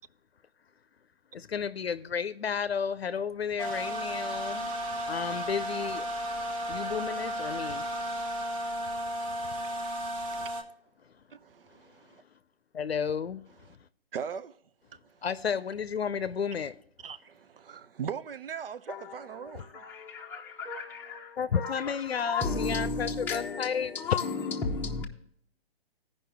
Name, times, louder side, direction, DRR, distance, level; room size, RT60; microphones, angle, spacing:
voice 1, 1.3-4.7 5.1-6.1 6.7-7.8 9.4-9.5 10.3-10.4 12.7-13.4 15.2-16.8 19.5-19.6 21.4-23.9, left 7 dB, 85° left, 0.6 m, -32 dB
sound 1, 3.6-10.6, equal, 35° right, 1.0 m, -34 dB
voice 2, 11.3-12.2 14.1-14.5 17.0-19.8, right 7 dB, 65° right, 0.7 m, -40 dB
voice 3, 18.9-25.0, left 4 dB, 5° left, 0.7 m, -34 dB
15.5 x 5.4 x 3.5 m
figure-of-eight pair, 140°, 30 cm